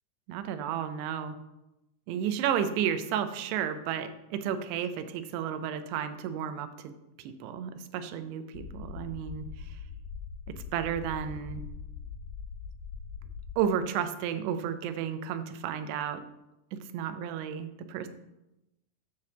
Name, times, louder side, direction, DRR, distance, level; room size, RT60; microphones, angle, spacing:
voice 1, 0.3-1.4 2.1-6.9 7.2-9.8 10.5-11.6 13.6-16.2 16.7-18.1, right 9 dB, 90° right, 9 dB, 2.7 m, -32 dB
sound 1, 8.5-13.6, left 6 dB, 85° left, 2.8 m, -42 dB
9.5 x 3.4 x 6.8 m, 0.94 s
omnidirectional pair, 4.7 m